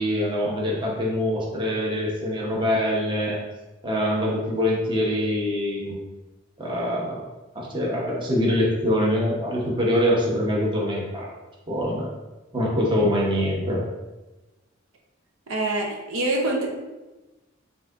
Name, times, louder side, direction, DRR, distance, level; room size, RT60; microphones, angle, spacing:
voice 1, 0.0-3.4 3.8-6.0 6.6-7.2 7.5-11.3 11.7-12.1 12.5-13.8, equal, 25° right, -4 dB, 0.9 m, -24 dB
voice 2, 15.5-16.7, right 2 dB, 90° right, 0 dB, 0.7 m, -25 dB
5.9 x 2.7 x 2.5 m, 1.1 s
head